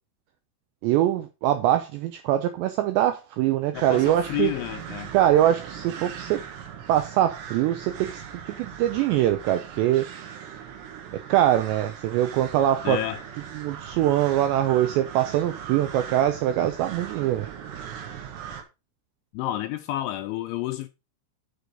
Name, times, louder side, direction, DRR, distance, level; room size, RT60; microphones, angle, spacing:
voice 1, 0.8-4.5 5.1-6.4 6.9-8.2 8.6-10.1 11.3-13.0 13.5-17.5, right 12 dB, 85° right, 2.5 m, -23 dB
voice 2, 3.7-5.1 12.8-13.2 19.3-20.9, left 14 dB, 85° left, 2.7 m, -30 dB
sound 1, 3.7-18.6, right 8 dB, 70° right, 3.2 m, -39 dB
7.0 x 6.4 x 5.1 m
omnidirectional pair, 5.8 m